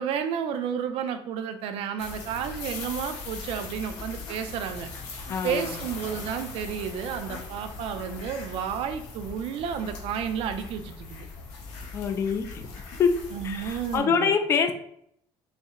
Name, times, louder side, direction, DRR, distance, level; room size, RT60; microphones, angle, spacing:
voice 1, 0.0-4.9 5.4-11.3 13.3-14.3, right 8 dB, 65° right, 8 dB, 0.5 m, -31 dB
sound 1, 2.0-14.0, left 3 dB, 90° left, 1.1 m, -40 dB
voice 2, 5.3-5.8 11.9-12.7 13.0-13.1 13.4-14.7, left 6 dB, 25° left, 7 dB, 0.3 m, -25 dB
4.1 x 2.1 x 3.6 m, 0.70 s
cardioid pair, 165°, 11 cm